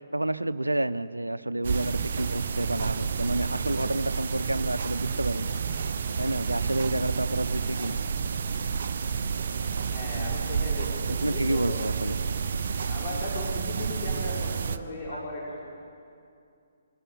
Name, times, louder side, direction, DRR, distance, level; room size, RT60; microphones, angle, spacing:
voice 1, 0.0-5.5 6.2-8.0 11.1-12.2 15.1-15.2, right 1 dB, 90° right, 14 dB, 0.6 m, -29 dB
sound 1, 1.6-14.8, right 6 dB, 55° right, 0.9 m, -30 dB
voice 2, 9.8-11.8 12.9-15.6, left 2 dB, 30° left, -6 dB, 5.4 m, -36 dB
23.5 x 13.5 x 9.9 m, 2.5 s
figure-of-eight pair, 135°, 0 cm